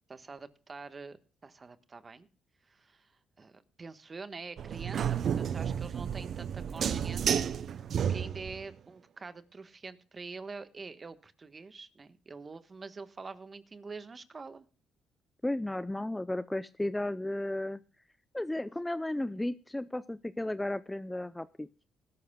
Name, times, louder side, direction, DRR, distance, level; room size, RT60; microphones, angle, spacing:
voice 1, 0.1-1.2 1.4-2.3 2.6-14.6, right 4 dB, 30° right, 11 dB, 1.3 m, -46 dB
sound 1, 4.6-8.7, right 8 dB, 60° right, 0.6 m, -31 dB
voice 2, 15.4-17.8 18.3-21.7, left 1 dB, 10° left, 15 dB, 0.5 m, -34 dB
20.0 x 12.5 x 2.3 m, 0.36 s
cardioid pair, 90°, 0 cm